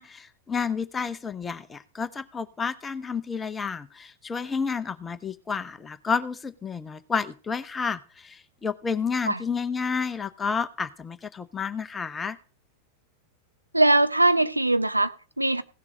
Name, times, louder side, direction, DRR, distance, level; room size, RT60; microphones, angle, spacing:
voice 1, 0.0-12.4, left 5 dB, 15° left, 0.8 m, -30 dB
voice 2, 13.7-15.6, right 2 dB, 85° right, 0.9 m, -21 dB
16.5 x 7.2 x 5.1 m
figure-of-eight pair, 90°, 0 cm